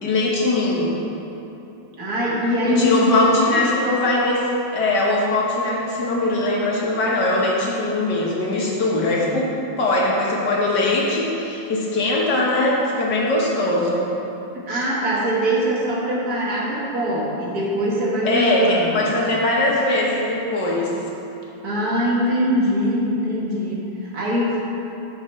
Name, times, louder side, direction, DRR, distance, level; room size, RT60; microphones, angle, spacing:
voice 1, 0.0-1.0 2.6-4.5 4.7-9.5 9.8-14.1 14.7-14.8 18.2-18.6 18.9-20.9, left 2 dB, 60° left, -3 dB, 1.8 m, -21 dB
voice 2, 2.0-3.7 14.5-19.1 21.6-24.6, equal, 50° right, -5 dB, 1.7 m, -22 dB
10.5 x 5.4 x 4.3 m, 2.9 s
omnidirectional pair, 2.3 m